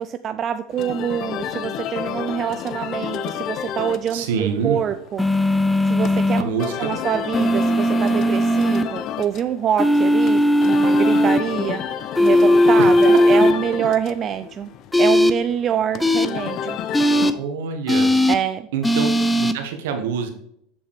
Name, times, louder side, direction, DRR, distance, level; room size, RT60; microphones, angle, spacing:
voice 1, 0.0-5.2 5.9-11.8 12.2-14.7 15.0-16.8 18.3-18.7, right 9 dB, 40° right, 10 dB, 0.4 m, -25 dB
sound 1, 0.7-17.3, left 9 dB, 50° left, 0.6 m, -31 dB
voice 2, 4.1-4.8 6.4-7.0 12.8-13.2 17.3-18.1 18.7-20.3, right 6 dB, 70° right, 7 dB, 1.2 m, -26 dB
sound 2, 5.2-6.4 7.3-8.8 9.8-11.4 12.1-13.5 14.9-15.3 16.0-16.3 16.9-17.3 17.9-18.4 18.8-19.5, left 1 dB, 10° left, 0.6 m, -17 dB
7.3 x 7.0 x 3.3 m, 0.71 s
hypercardioid pair, 80°, 0 cm